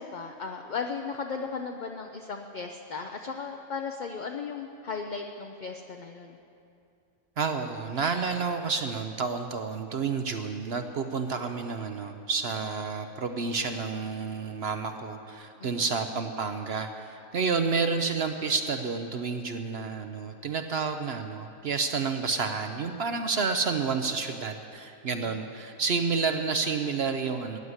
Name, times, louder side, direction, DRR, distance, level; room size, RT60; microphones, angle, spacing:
voice 1, 0.0-6.4 15.6-15.9 25.1-25.4, left 5 dB, 45° left, 3 dB, 0.6 m, -36 dB
voice 2, 7.4-27.6, right 5 dB, 55° right, 6 dB, 0.8 m, -30 dB
14.5 x 9.7 x 8.0 m, 2.6 s
omnidirectional pair, 1.5 m